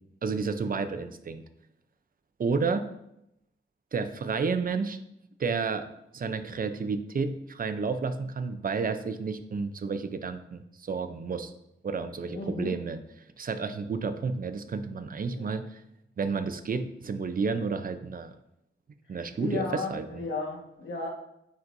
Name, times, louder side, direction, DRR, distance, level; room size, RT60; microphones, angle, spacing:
voice 1, 0.2-1.4 2.4-2.9 3.9-5.0 5.4-5.9 6.1-11.5 11.8-13.0 13.4-15.8 16.2-18.3 19.1-20.2, right 4 dB, 45° right, 10 dB, 0.5 m, -31 dB
voice 2, 12.3-12.7 15.3-15.5 19.1-21.1, left 3 dB, 65° left, -1 dB, 1.4 m, -34 dB
9.0 x 4.1 x 2.6 m, 0.82 s
wide cardioid pair, 120°, 21 cm